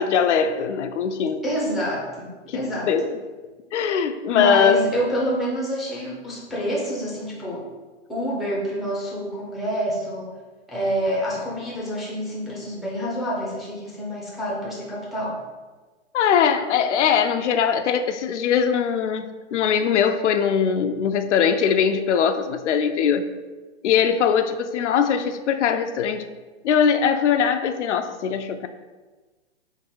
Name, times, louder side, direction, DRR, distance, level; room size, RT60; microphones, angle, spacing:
voice 1, 0.0-1.4 2.5-3.2 3.7-4.8 16.1-23.3 23.8-26.3 26.6-28.7, left 7 dB, 85° left, 8 dB, 0.5 m, -21 dB
voice 2, 1.4-2.9 4.3-7.7 8.1-10.4 10.7-15.4, equal, ahead, -5 dB, 0.5 m, -27 dB
3.7 x 2.6 x 4.4 m, 1.3 s
hypercardioid pair, 145°, 34 cm